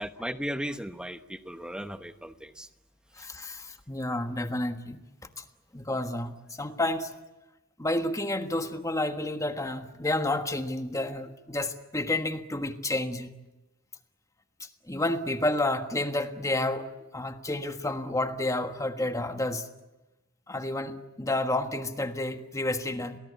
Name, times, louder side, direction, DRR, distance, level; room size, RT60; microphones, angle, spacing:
voice 1, 0.0-2.7, equal, 5° right, 9 dB, 1.1 m, -36 dB
voice 2, 3.2-5.0 5.7-7.1 7.8-13.3 14.9-19.7 20.5-23.2, left 2 dB, 15° left, 7 dB, 1.5 m, -30 dB
30.0 x 19.0 x 8.4 m, 1.0 s
head